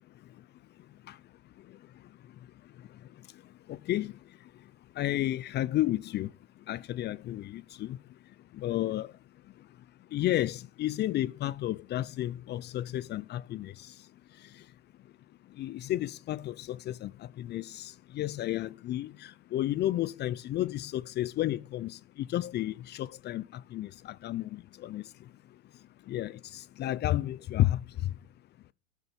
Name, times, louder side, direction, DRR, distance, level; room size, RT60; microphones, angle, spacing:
voice 1, 3.7-4.1 5.0-6.3 6.7-8.0 8.6-9.1 10.1-13.7 15.6-17.1 17.4-22.0 22.3-23.4 23.7-23.9 24.2-25.0 26.1-27.8, left 14 dB, 30° left, 0.7 m, -32 dB
13.0 x 12.5 x 8.1 m
hypercardioid pair, 115°, 37 cm